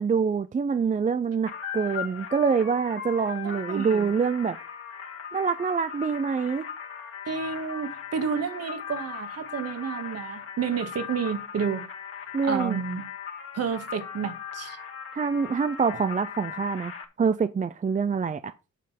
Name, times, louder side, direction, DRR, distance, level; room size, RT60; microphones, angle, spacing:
voice 1, 0.0-4.6 5.3-6.6 12.3-12.8 15.1-16.9 17.2-18.5, right 5 dB, 25° right, 0.5 m, -25 dB
sound 1, 1.5-17.0, left 8 dB, 45° left, 2.1 m, -39 dB
voice 2, 3.4-4.1 7.3-11.8 12.4-13.1 13.5-14.8, right 6 dB, 55° right, 1.7 m, -30 dB
9.1 x 5.4 x 5.8 m
cardioid pair, 90°, 30 cm